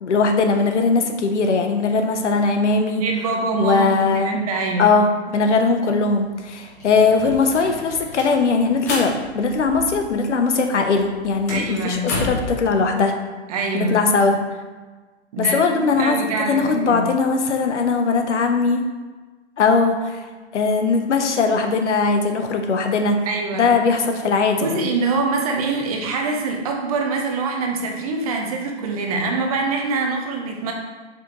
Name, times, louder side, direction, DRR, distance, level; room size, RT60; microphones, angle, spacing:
voice 1, 0.0-3.0 3.6-4.4 4.8-13.1 13.9-14.4 15.4-16.2 16.5-18.8 19.6-20.2 20.5-23.2 23.5-24.9, left 4 dB, 90° left, 5 dB, 0.7 m, -19 dB
voice 2, 3.0-4.9 11.5-12.1 13.5-14.0 15.3-17.0 23.3-23.7 24.6-30.7, right 3 dB, 35° right, 1 dB, 0.6 m, -24 dB
sound 1, 6.1-6.2 6.4-10.3 10.6-12.5, left 1 dB, 15° left, 0.4 m, -31 dB
4.9 x 3.7 x 2.9 m, 1.3 s
hypercardioid pair, 150°, 34 cm